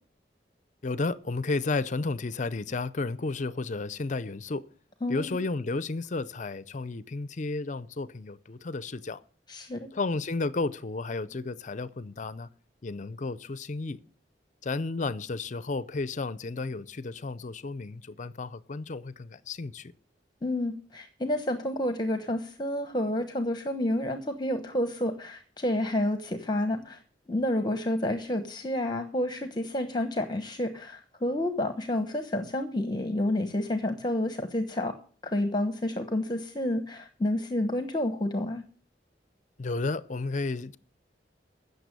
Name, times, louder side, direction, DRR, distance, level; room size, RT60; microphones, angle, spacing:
voice 1, 0.8-4.6 5.1-9.2 9.9-12.5 12.8-14.0 14.6-19.9 39.6-40.8, left 3 dB, 45° left, 0.5 m, -32 dB
voice 2, 5.0-5.4 9.5-9.9 20.4-27.0 27.3-34.9 35.2-38.6, left 1 dB, 25° left, 1.1 m, -29 dB
15.5 x 6.8 x 6.7 m
head